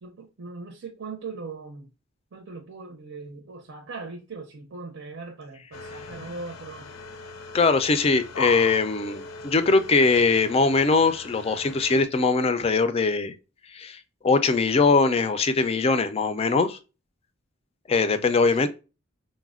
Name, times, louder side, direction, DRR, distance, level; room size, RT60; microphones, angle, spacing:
voice 1, 0.0-1.9 2.3-6.9 18.6-18.7, right 4 dB, 70° right, 0.6 m, -39 dB
sound 1, 5.7-12.0, left 4 dB, 90° left, 0.6 m, -38 dB
voice 2, 7.5-13.3 13.7-16.8 17.9-18.7, left 4 dB, 30° left, 0.3 m, -21 dB
4.0 x 2.1 x 2.3 m
head